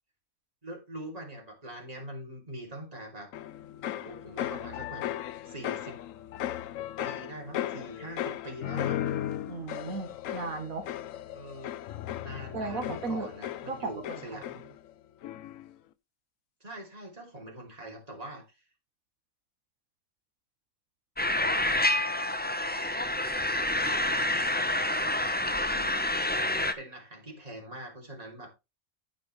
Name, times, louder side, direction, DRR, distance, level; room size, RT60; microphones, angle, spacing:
voice 1, 0.6-3.3 3.9-5.0 5.4-6.0 7.0-9.0 11.3-11.8 12.2-14.6 16.6-18.6 25.7-26.1 26.5-28.5, right 1 dB, 25° right, 2.9 m, -43 dB
sound 1, 3.3-14.9 15.2-15.7, left 12 dB, 75° left, 1.0 m, -36 dB
voice 2, 9.5-10.9 12.5-13.3 13.7-14.4, right 3 dB, 80° right, 1.9 m, -36 dB
sound 2, 21.2-26.7, left 1 dB, 10° left, 0.6 m, -28 dB
14.5 x 5.1 x 3.2 m
omnidirectional pair, 1.4 m